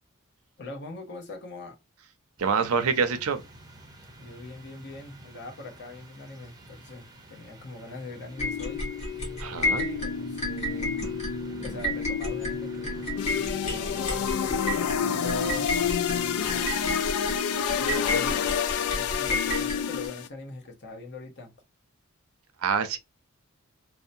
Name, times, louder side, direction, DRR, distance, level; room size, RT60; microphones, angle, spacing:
voice 1, 0.6-1.8 4.2-8.8 9.6-10.9 11.6-13.1 13.6-15.7 16.4-17.1 17.8-21.5, left 3 dB, 55° left, 0.8 m, -42 dB
sound 1, 2.4-16.6, equal, 20° right, 0.5 m, -46 dB
voice 2, 2.4-3.4 9.4-9.8 22.6-23.0, right 6 dB, 75° right, 0.5 m, -26 dB
sound 2, 8.4-20.1, left 3 dB, 30° left, 1.1 m, -31 dB
sound 3, 13.2-20.3, left 7 dB, 80° left, 0.3 m, -28 dB
2.7 x 2.0 x 2.5 m
head